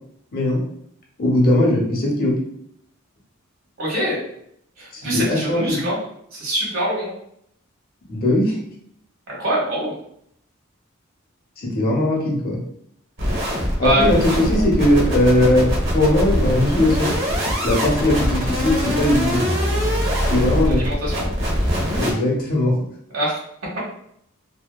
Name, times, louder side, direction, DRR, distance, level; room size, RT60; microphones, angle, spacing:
voice 1, 1.2-2.3 4.9-5.8 8.1-8.6 11.6-12.6 13.8-17.1 17.6-19.4 20.3-20.8 21.9-22.7, left 1 dB, 45° left, -2 dB, 0.7 m, -19 dB
voice 2, 3.8-4.2 4.8-6.0 6.3-7.1 9.3-9.9 13.8-14.0 14.5-14.6 20.6-21.3 23.1-23.4, right 1 dB, 90° right, -4 dB, 1.1 m, -24 dB
sound 1, 13.2-22.1, equal, 60° right, 0.8 m, -22 dB
2.7 x 2.1 x 2.2 m, 0.71 s
head